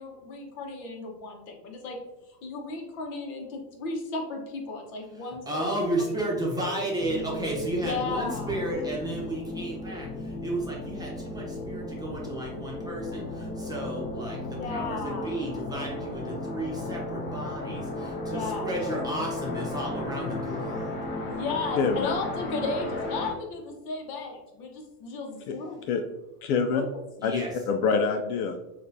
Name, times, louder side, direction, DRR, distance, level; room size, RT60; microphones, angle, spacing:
voice 1, 0.0-2.0 2.3-5.7 6.0-6.1 6.7-6.9 7.8-8.8 14.5-15.4 18.2-18.7 21.2-25.8 26.7-26.8, left 4 dB, 50° left, 2 dB, 1.2 m, -35 dB
voice 2, 5.2-20.9 27.2-27.5, right 1 dB, 10° right, -4 dB, 1.0 m, -33 dB
sound 1, 7.0-23.3, left 2 dB, 25° left, 0.9 m, -35 dB
voice 3, 21.8-22.1 25.5-25.6 25.9-26.0 26.4-26.8 27.2-28.6, left 5 dB, 70° left, 6 dB, 0.6 m, -26 dB
6.4 x 2.5 x 2.7 m, 0.96 s
supercardioid pair, 130°, 47 cm